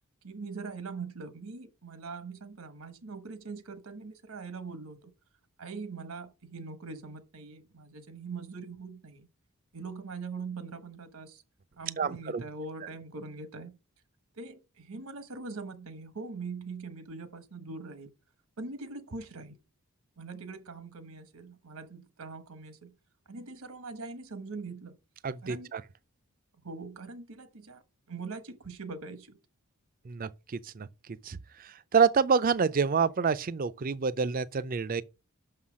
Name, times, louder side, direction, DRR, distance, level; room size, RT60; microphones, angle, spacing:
voice 1, 0.2-5.1 5.6-9.3 9.7-11.4 11.8-13.8 14.3-18.1 18.6-19.6 20.2-22.9 23.3-25.0 25.4-25.7 26.6-27.8 28.1-29.4, right 4 dB, 80° right, 1.1 m, -42 dB
voice 2, 12.0-12.4 25.2-25.8 30.1-30.9 31.2-35.0, right 5 dB, 40° right, 0.4 m, -27 dB
6.4 x 5.6 x 6.1 m
head